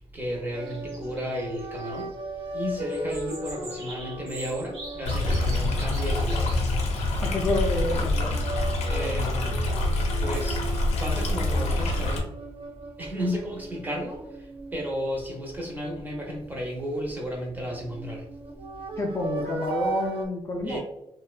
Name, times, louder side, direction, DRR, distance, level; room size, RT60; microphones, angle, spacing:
voice 1, 0.1-2.1 2.5-6.5 8.9-9.7 10.2-10.6 11.0-12.3 13.0-18.2 20.6-20.8, equal, 15° right, 0 dB, 0.6 m, -33 dB
sound 1, 0.5-7.6 8.1-15.9 17.6-20.3, right 2 dB, 60° right, 0.5 m, -37 dB
sound 2, 0.6-2.0 2.9-7.1, right 2 dB, 85° right, 0.8 m, -44 dB
Stream, 5.1-12.2, left 2 dB, 85° left, 0.5 m, -26 dB
voice 2, 7.2-8.4 19.0-20.8, left 2 dB, 25° left, 0 dB, 0.3 m, -28 dB
2.5 x 2.1 x 2.3 m, 0.82 s
cardioid pair, 125°, 11 cm